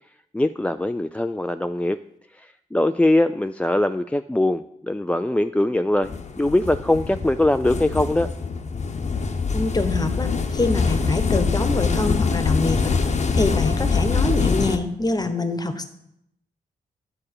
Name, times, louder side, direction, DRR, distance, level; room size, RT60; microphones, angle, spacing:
voice 1, 0.3-2.0 2.3-8.3, left 1 dB, 10° left, 10 dB, 0.3 m, -22 dB
sound 1, 6.0-14.8, left 5 dB, 45° left, 0.9 m, -24 dB
voice 2, 9.5-15.8, left 2 dB, 25° left, 9 dB, 1.1 m, -25 dB
8.7 x 4.3 x 6.5 m, 0.77 s
supercardioid pair, 55°, 17 cm